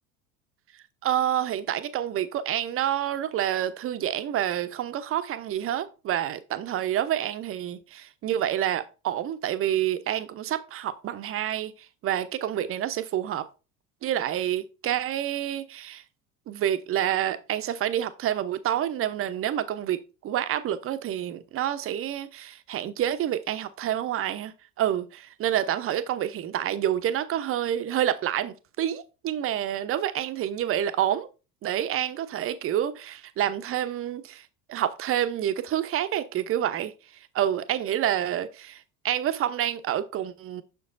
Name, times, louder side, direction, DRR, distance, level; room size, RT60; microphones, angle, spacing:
voice 1, 1.0-11.7 12.0-13.5 14.0-16.0 16.5-31.3 31.6-36.9 37.3-40.6, right 11 dB, 30° right, 0.7 m, -28 dB
6.8 x 6.4 x 2.5 m
figure-of-eight pair, 70°, 46 cm